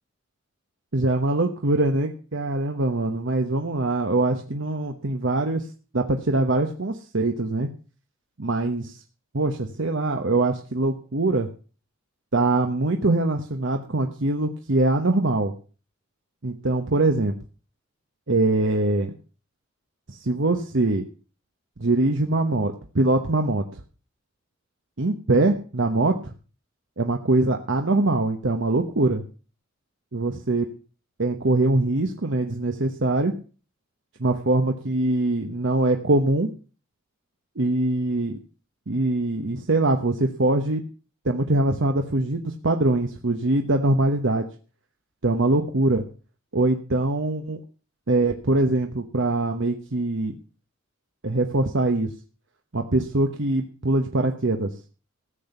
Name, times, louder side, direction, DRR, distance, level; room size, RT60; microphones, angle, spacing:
voice 1, 0.9-5.7 5.9-7.7 8.4-9.0 9.3-11.5 12.3-15.5 16.4-17.4 18.3-19.1 20.1-21.0 21.8-23.8 25.0-26.3 27.0-29.2 30.1-30.7 31.2-33.3 34.2-36.5 37.6-38.4 38.9-40.8 41.2-44.4 45.2-46.0 46.5-47.6 48.1-50.3 51.2-52.1 52.7-54.8, right 2 dB, 70° right, 5 dB, 1.1 m, -23 dB
14.5 x 7.8 x 6.7 m, 0.38 s
head